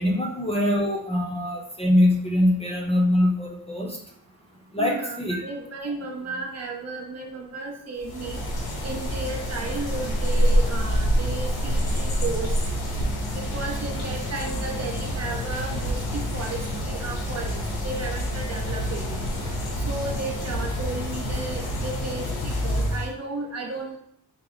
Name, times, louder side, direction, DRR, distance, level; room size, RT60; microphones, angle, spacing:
voice 1, 0.0-4.0 4.7-5.4, left 1 dB, 15° left, -1 dB, 0.5 m, -23 dB
voice 2, 4.8-8.4 8.8-12.5 13.3-17.6 17.8-19.3 19.8-24.0, right 3 dB, 45° right, 1 dB, 0.6 m, -33 dB
sound 1, 8.0-23.1, equal, 80° left, 0.9 m, -27 dB
4.5 x 2.0 x 3.8 m, 0.69 s
wide cardioid pair, 165°, 37 cm